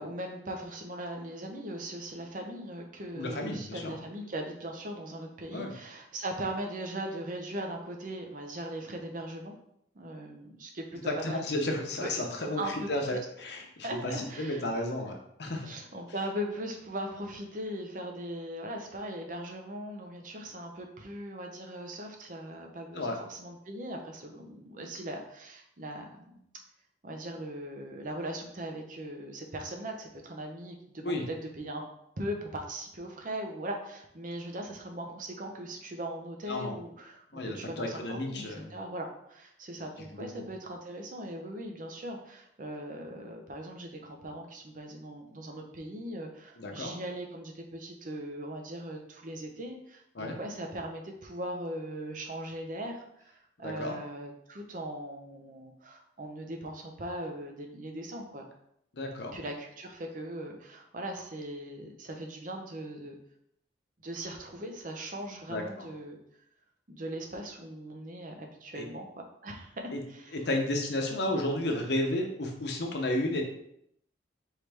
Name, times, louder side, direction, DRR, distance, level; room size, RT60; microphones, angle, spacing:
voice 1, 0.0-9.6 9.9-11.4 12.0-12.1 12.6-12.9 13.6-14.6 15.6-26.4 27.0-31.8 32.2-58.5 59.3-63.2 64.0-66.2 66.9-70.3, right 1 dB, 45° right, 2 dB, 0.7 m, -39 dB
voice 2, 3.1-4.0 5.5-5.7 11.0-15.7 22.9-23.2 31.0-31.2 36.5-36.7 37.3-38.7 40.1-40.4 46.6-46.9 50.2-50.4 53.6-54.0 58.9-59.4 65.5-65.9 68.8-68.9 69.9-70.0 70.3-73.4, left 1 dB, 65° left, 2 dB, 0.8 m, -32 dB
4.6 x 3.2 x 3.4 m, 0.73 s
head